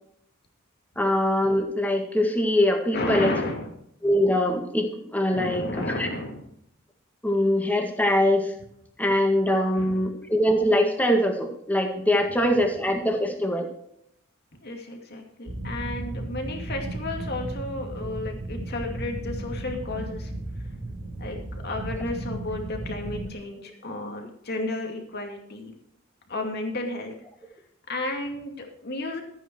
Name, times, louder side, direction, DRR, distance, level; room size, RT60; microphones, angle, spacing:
voice 1, 1.0-3.3 4.0-6.1 7.2-8.5 9.0-13.7, left 1 dB, 10° left, 3 dB, 1.9 m, -23 dB
voice 2, 2.9-3.7 5.3-6.5 9.7-10.0 12.3-12.4 14.6-20.3 21.2-25.7 26.3-27.1 27.9-29.2, left 2 dB, 50° left, 3 dB, 2.4 m, -32 dB
sound 1, 15.5-23.3, right 1 dB, 45° right, 2.8 m, -34 dB
14.0 x 9.3 x 4.6 m, 0.72 s
head